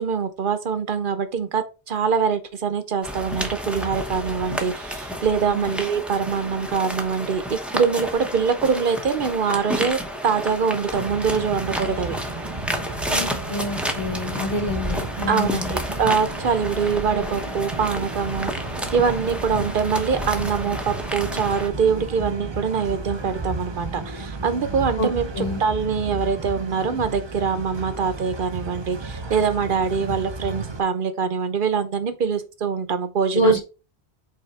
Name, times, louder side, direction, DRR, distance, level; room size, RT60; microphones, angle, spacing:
voice 1, 0.0-12.1 15.3-18.5 18.9-33.6, right 6 dB, 55° right, 1.0 m, -24 dB
sound 1, 3.0-21.7, equal, ahead, 0.8 m, -31 dB
sound 2, 10.9-30.8, right 3 dB, 30° right, 0.6 m, -34 dB
voice 2, 13.1-15.8 25.0-25.6 33.3-33.6, equal, 50° left, 1.4 m, -25 dB
5.7 x 4.2 x 4.1 m
omnidirectional pair, 1.1 m